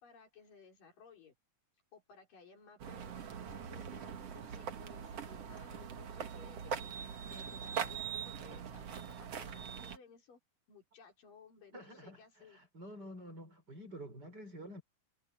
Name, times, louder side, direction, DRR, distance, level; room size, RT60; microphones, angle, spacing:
voice 1, 0.0-1.3 1.9-10.4 10.7-12.6, left 6 dB, 75° left, 6.3 m, -59 dB
sound 1, 2.8-10.0, right 8 dB, 50° right, 2.4 m, -42 dB
voice 2, 11.7-12.2 12.5-14.8, equal, 30° right, 6.0 m, -49 dB
omnidirectional pair, 3.9 m